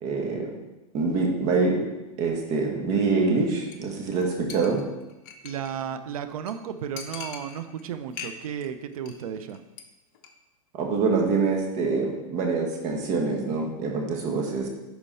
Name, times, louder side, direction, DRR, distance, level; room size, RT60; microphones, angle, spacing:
voice 1, 0.0-0.5 0.9-1.9 2.2-4.8 10.7-14.7, right 4 dB, 40° right, 2 dB, 1.7 m, -25 dB
Chink clink, 3.7-4.2 4.5-5.8 6.1-6.2 6.5-6.6 7.0-7.8 8.1-8.7 8.9-9.2 9.5-9.8 10.1-10.3, left 6 dB, 45° left, 1.0 m, -41 dB
voice 2, 5.4-9.6, right 8 dB, 80° right, 11 dB, 0.8 m, -34 dB
11.0 x 4.5 x 4.2 m, 1.0 s
supercardioid pair, 140°, 18 cm